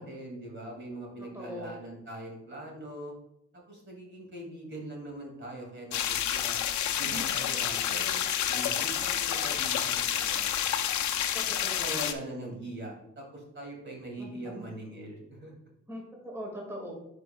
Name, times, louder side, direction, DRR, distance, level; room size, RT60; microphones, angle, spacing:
voice 1, 0.0-3.1 3.7-6.6 7.0-8.2 8.5-10.8 11.5-15.5, right 1 dB, 40° right, -1 dB, 2.4 m, -42 dB
voice 2, 1.2-1.7 7.0-7.2 11.3-12.1 14.2-14.6 15.9-16.9, equal, 10° right, -2 dB, 2.0 m, -41 dB
sound 1, 5.9-12.1, left 10 dB, 70° left, 0.6 m, -29 dB
10.5 x 4.9 x 2.3 m, 0.82 s
cardioid pair, 90°, 30 cm